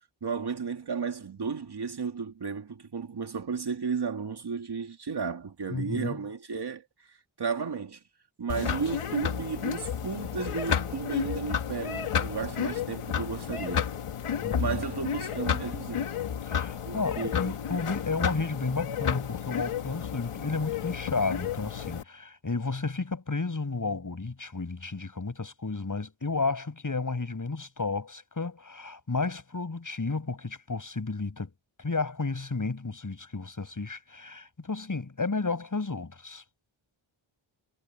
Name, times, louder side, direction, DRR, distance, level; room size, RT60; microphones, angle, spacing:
voice 1, 0.2-8.0 8.4-13.9 14.6-16.1 16.8-17.6, right 5 dB, 50° right, 2.3 m, -34 dB
voice 2, 5.7-6.2 14.4-14.8 16.4-31.5 31.8-36.4, left 3 dB, 40° left, 7.2 m, -32 dB
sound 1, 8.5-22.0, left 8 dB, 85° left, 1.9 m, -31 dB
cardioid pair, 75°, 50 cm